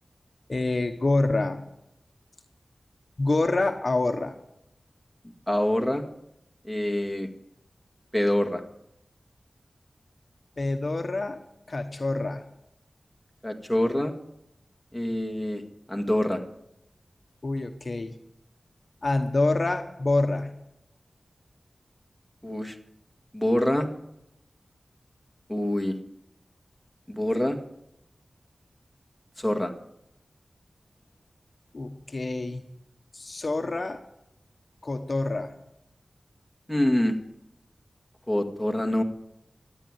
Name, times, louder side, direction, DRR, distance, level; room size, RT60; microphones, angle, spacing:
voice 1, 0.5-1.6 3.2-4.3 10.6-11.4 11.7-12.4 17.4-18.1 19.0-20.5 31.7-32.6 33.1-34.0 34.8-35.5, left 2 dB, 55° left, 7 dB, 1.0 m, -26 dB
voice 2, 5.5-6.0 6.6-7.3 8.1-8.6 13.4-14.1 14.9-15.6 15.9-16.4 22.4-22.8 23.3-23.9 25.5-26.0 27.1-27.6 29.4-29.7 36.7-37.2 38.3-39.0, left 1 dB, 5° left, 4 dB, 2.0 m, -25 dB
13.5 x 9.0 x 9.2 m, 0.83 s
wide cardioid pair, 55°, 0 cm